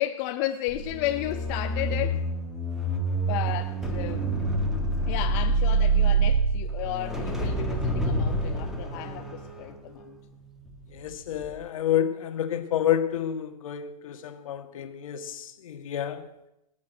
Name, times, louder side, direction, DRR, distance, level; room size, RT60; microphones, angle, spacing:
voice 1, 0.0-2.3 3.3-4.3 5.1-10.2, left 14 dB, 25° left, 0.6 m, -33 dB
sound 1, 0.7-11.0 11.3-11.6, right 3 dB, ahead, 1.6 m, -27 dB
voice 2, 10.9-16.3, left 10 dB, 55° left, 1.7 m, -29 dB
19.0 x 8.5 x 7.9 m
hypercardioid pair, 155°, 21 cm